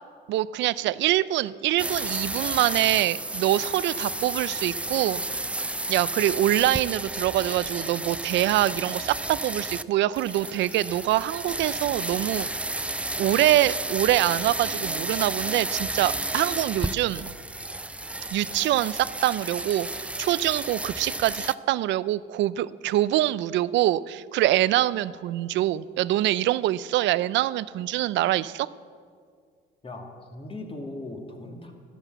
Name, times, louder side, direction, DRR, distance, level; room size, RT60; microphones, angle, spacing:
voice 1, 0.3-5.5 5.9-12.8 13.2-17.3 18.3-28.7, right 14 dB, 75° right, 18 dB, 0.5 m, -25 dB
sound 1, 1.8-9.8 10.1-21.5, right 1 dB, 5° right, 0.5 m, -32 dB
voice 2, 29.8-31.7, left 2 dB, 30° left, 2 dB, 2.7 m, -38 dB
13.0 x 12.0 x 8.1 m, 2.1 s
cardioid pair, 90°, 19 cm